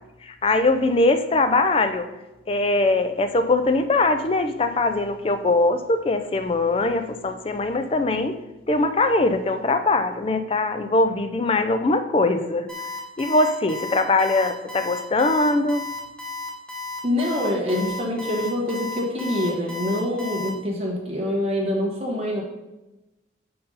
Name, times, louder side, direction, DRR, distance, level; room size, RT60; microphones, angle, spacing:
voice 1, 0.2-2.1 2.5-8.4 8.7-15.9, left 2 dB, 30° left, 8 dB, 0.4 m, -22 dB
Alarm, 12.7-20.5, left 3 dB, 5° left, 1.0 m, -33 dB
voice 2, 17.0-22.4, left 1 dB, 30° right, -1 dB, 1.3 m, -25 dB
5.0 x 4.6 x 5.4 m, 1.0 s
head